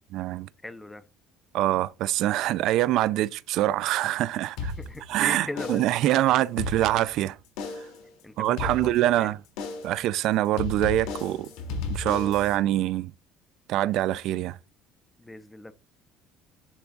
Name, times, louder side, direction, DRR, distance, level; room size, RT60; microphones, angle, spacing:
voice 1, 0.1-0.5 1.5-4.7 5.1-7.4 8.4-9.4 9.8-11.5 11.9-13.1 13.7-14.6, right 14 dB, 50° right, 0.4 m, -24 dB
voice 2, 0.6-1.0 4.8-5.8 8.2-8.3 8.8-8.9 9.1-9.3 15.2-15.7, left 2 dB, 5° left, 0.5 m, -38 dB
sound 1, 4.6-5.2 5.6-6.1 6.4-7.2 7.6-8.0 8.6-9.2 9.6-10.0 10.6-12.6, left 3 dB, 70° left, 2.7 m, -34 dB
10.0 x 3.5 x 3.9 m
cardioid pair, 175°, 0 cm